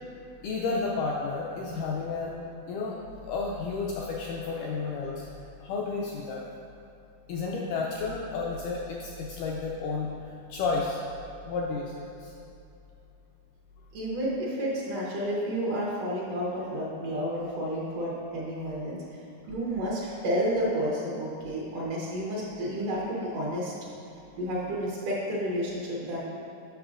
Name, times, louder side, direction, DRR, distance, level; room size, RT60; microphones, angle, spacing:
voice 1, 0.4-3.0 3.2-5.3 5.6-6.4 7.3-10.1 10.5-11.0 11.5-12.3, left 4 dB, 90° left, -3 dB, 1.8 m, -31 dB
voice 2, 13.9-23.7 24.4-26.2, equal, 85° right, -5 dB, 1.4 m, -31 dB
8.1 x 6.1 x 2.5 m, 2.7 s
omnidirectional pair, 4.1 m